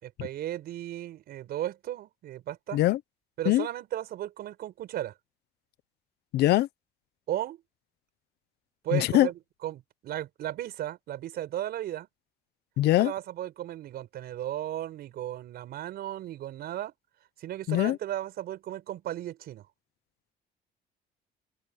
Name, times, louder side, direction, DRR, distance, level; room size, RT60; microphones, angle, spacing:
voice 1, 0.0-2.8 3.4-5.1 7.3-7.6 8.8-9.3 9.6-12.1 12.9-16.9 17.4-19.7, right 12 dB, 70° right, 5.3 m, -35 dB
voice 2, 6.3-6.7 8.9-9.3 12.8-13.1 17.7-18.0, left 15 dB, 75° left, 0.9 m, -22 dB
cardioid pair, 110°, 17 cm